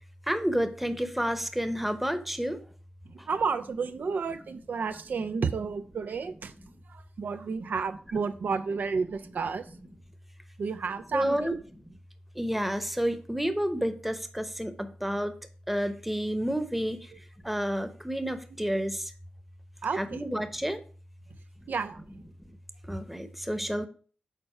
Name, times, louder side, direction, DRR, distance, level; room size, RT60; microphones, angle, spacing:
voice 1, 0.3-2.6 11.1-11.5 12.4-15.3 15.7-17.1 17.4-19.1 20.0-20.8 22.9-23.9, equal, 5° right, 0.9 m, -30 dB
voice 2, 3.1-6.5 6.9-9.6 10.6-11.6 19.8-20.2 21.7-22.0, right 5 dB, 75° right, 0.5 m, -31 dB
6.8 x 4.2 x 4.4 m
cardioid pair, 50°, 3 cm